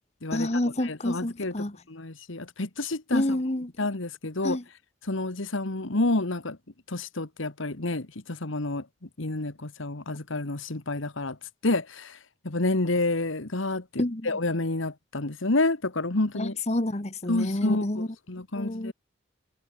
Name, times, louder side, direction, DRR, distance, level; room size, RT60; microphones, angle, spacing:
voice 1, 0.3-1.8 3.1-3.7 4.4-4.6 14.0-14.3 16.3-18.1 18.6-18.9, left 1 dB, 35° left, 1.3 m, -28 dB
voice 2, 0.8-1.5 1.9-3.4 3.8-4.6 5.1-6.6 6.9-8.8 9.2-11.4 11.6-12.1 12.5-16.5 17.3-18.9, left 2 dB, 75° left, 1.7 m, -29 dB
head